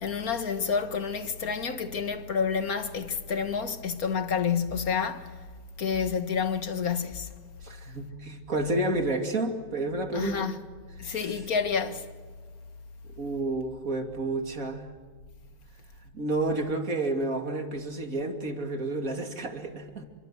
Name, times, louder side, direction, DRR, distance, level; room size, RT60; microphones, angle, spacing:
voice 1, 0.0-5.3 5.8-7.4 10.1-10.6 11.0-12.1, left 6 dB, 55° left, 2.1 m, -29 dB
voice 2, 7.6-10.5 11.1-11.4 13.2-14.8 16.1-20.0, right 2 dB, 50° right, 3.1 m, -30 dB
28.5 x 24.5 x 7.7 m
omnidirectional pair, 1.9 m